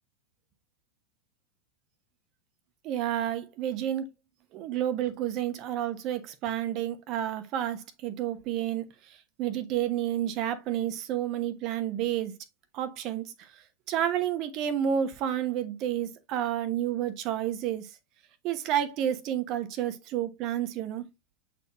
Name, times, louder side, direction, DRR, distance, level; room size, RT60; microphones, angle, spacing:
voice 1, 2.8-4.1 4.5-12.4 12.7-13.6 13.9-17.9 18.4-21.1, right 10 dB, 40° right, 1.1 m, -30 dB
8.0 x 4.4 x 3.0 m
figure-of-eight pair, 90°, 0 cm